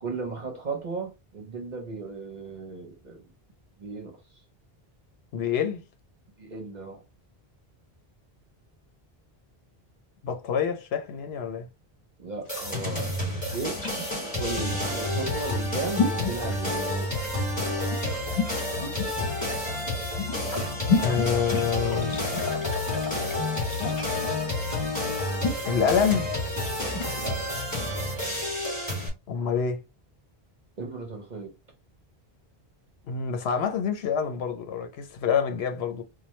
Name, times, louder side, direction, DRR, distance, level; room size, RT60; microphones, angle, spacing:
voice 1, 0.0-3.3 3.8-4.2 6.4-7.0 12.2-13.8 14.4-17.1 27.1-27.6 30.8-31.5, right 4 dB, 50° right, 0.8 m, -36 dB
voice 2, 5.3-5.8 10.2-11.7 21.0-22.1 25.6-26.3 29.3-29.8 33.1-36.0, left 7 dB, 80° left, 0.9 m, -27 dB
sound 1, 12.4-27.2, left 4 dB, 55° left, 1.2 m, -32 dB
sound 2, 12.5-29.1, left 1 dB, 5° left, 2.5 m, -29 dB
4.5 x 2.2 x 3.1 m
omnidirectional pair, 1.0 m